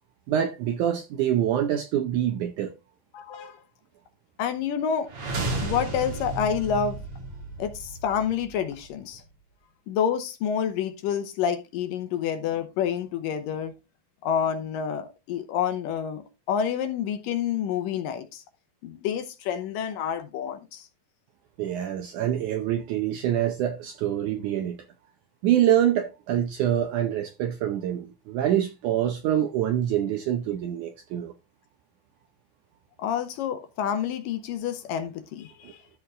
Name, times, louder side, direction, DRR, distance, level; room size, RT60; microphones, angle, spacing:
voice 1, 0.3-2.7 21.6-24.8 25.4-31.3 35.6-35.7, right 11 dB, 80° right, 1.8 m, -25 dB
voice 2, 3.1-3.6 4.4-5.1 5.6-7.0 7.6-9.2 9.9-13.7 14.2-18.4 18.8-20.9 33.0-35.8, left 8 dB, 75° left, 2.3 m, -28 dB
sound 1, 5.0-9.0, right 2 dB, 50° right, 3.4 m, -33 dB
13.0 x 4.5 x 3.7 m
omnidirectional pair, 4.4 m